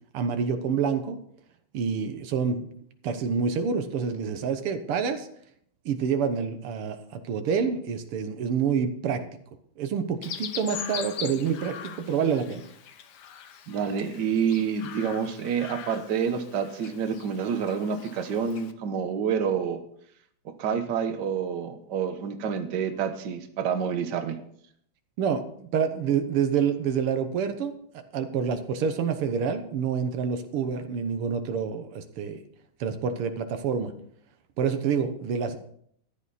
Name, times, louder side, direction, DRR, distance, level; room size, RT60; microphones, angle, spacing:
voice 1, 0.1-1.2 1.7-2.7 3.0-5.3 5.9-9.2 9.8-12.6 25.2-27.7 28.1-32.4 32.8-33.9 34.6-35.6, right 6 dB, 85° right, 8 dB, 2.0 m, -27 dB
Chirp tweet, 10.2-18.7, left 8 dB, 60° left, 1.3 m, -41 dB
voice 2, 13.7-19.8 20.4-24.4, right 7 dB, 55° right, 7 dB, 1.6 m, -28 dB
14.0 x 11.0 x 4.1 m, 0.67 s
omnidirectional pair, 2.4 m